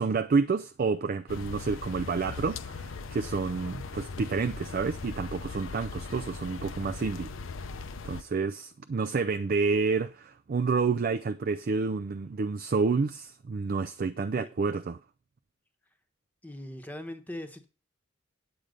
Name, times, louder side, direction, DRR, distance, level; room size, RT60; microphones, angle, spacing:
voice 1, 0.0-7.3 8.0-15.0, right 4 dB, 45° right, 0.4 m, -29 dB
sound 1, 1.3-8.2, left 4 dB, 75° left, 0.7 m, -39 dB
voice 2, 16.4-17.7, left 1 dB, 10° left, 1.0 m, -40 dB
8.7 x 7.9 x 5.1 m
head